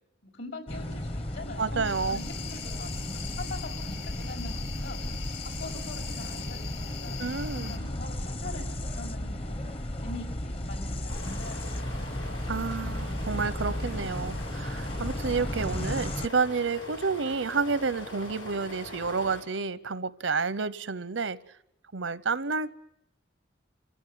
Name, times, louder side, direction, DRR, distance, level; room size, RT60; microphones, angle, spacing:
voice 1, 0.2-2.2 2.5-5.0 5.6-9.6 10.0-12.9, left 2 dB, 70° left, 3 dB, 5.5 m, -43 dB
sound 1, 0.7-16.3, left 1 dB, 30° left, 0.8 m, -34 dB
voice 2, 1.6-2.2 7.2-7.7 12.5-21.4 21.9-22.7, right 4 dB, 85° right, 17 dB, 0.8 m, -30 dB
sound 2, 1.8-7.8, left 8 dB, 55° left, 2.8 m, -42 dB
sound 3, 11.1-19.4, left 1 dB, 90° left, 7.1 m, -42 dB
27.5 x 16.0 x 9.5 m, 0.81 s
head